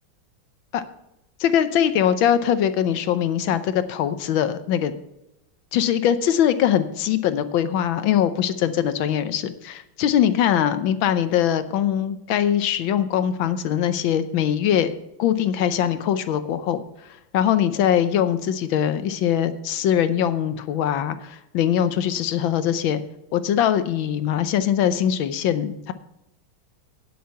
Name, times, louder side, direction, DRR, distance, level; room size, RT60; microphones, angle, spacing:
voice 1, 1.4-4.9 5.7-14.9 15.2-16.8 17.3-23.0 23.3-25.9, left 9 dB, 75° left, 12 dB, 1.4 m, -22 dB
9.4 x 8.5 x 5.7 m, 0.87 s
omnidirectional pair, 2.3 m